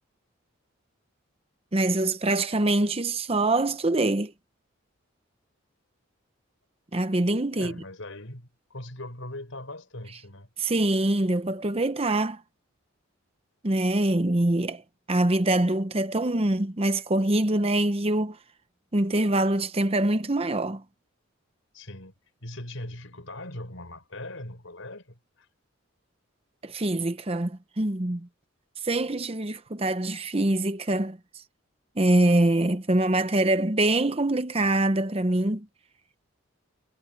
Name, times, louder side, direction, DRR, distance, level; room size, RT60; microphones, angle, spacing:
voice 1, 1.7-4.3 6.9-7.7 10.6-12.4 13.6-14.8 15.1-18.4 18.9-20.8 26.6-28.3 28.8-31.2 32.0-35.7, right 1 dB, 30° right, 0.8 m, -24 dB
voice 2, 7.5-10.5 21.7-22.1 22.4-25.5, left 1 dB, 70° left, 5.3 m, -40 dB
head